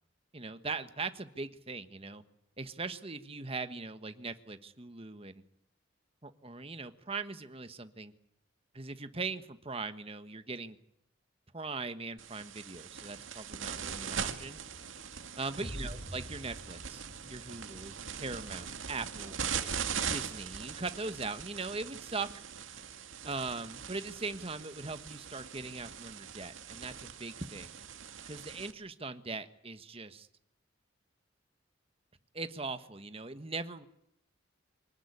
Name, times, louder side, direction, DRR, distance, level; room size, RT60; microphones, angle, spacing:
voice 1, 0.3-2.2 2.6-5.4 6.2-8.1 8.7-10.8 11.5-14.6 15.4-17.0 17.3-19.4 20.1-22.4 23.2-27.7 28.2-30.3 32.3-33.9, right 3 dB, 30° right, 10 dB, 1.4 m, -40 dB
sound 1, 12.2-28.7, right 7 dB, 75° right, 2.2 m, -41 dB
sound 2, 15.6-18.9, equal, 25° left, 6.0 m, -46 dB
24.5 x 19.0 x 9.9 m, 0.78 s
head